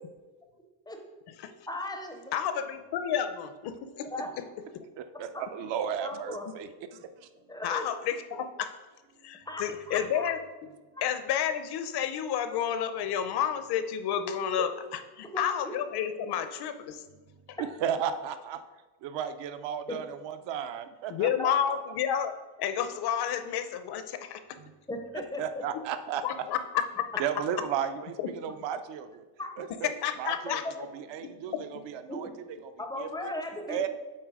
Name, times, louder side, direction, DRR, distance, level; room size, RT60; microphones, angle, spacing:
voice 1, 1.7-2.3 4.1-4.3 6.0-6.5 7.5-7.8 9.5-10.3 10.9-11.1 15.3-15.8 21.4-21.5 24.9-25.4 29.4-29.5 30.6-30.7 32.1-32.2 32.8-33.9, left 1 dB, 10° left, 4 dB, 0.4 m, -37 dB
voice 2, 2.3-4.1 4.7-4.8 7.6-8.7 9.2-10.4 11.0-17.0 17.5-17.6 21.1-24.4 26.2-27.1 30.0-30.6 31.5-31.8, left 9 dB, 55° left, 10 dB, 0.6 m, -30 dB
voice 3, 5.0-6.7 17.6-18.6 19.0-21.5 25.4-26.5 27.2-29.2 29.6-29.9 30.2-32.7 33.0-33.3 33.7-33.9, right 8 dB, 65° right, 10 dB, 0.6 m, -34 dB
7.6 x 4.1 x 4.7 m, 1.2 s
cardioid pair, 175°, 47 cm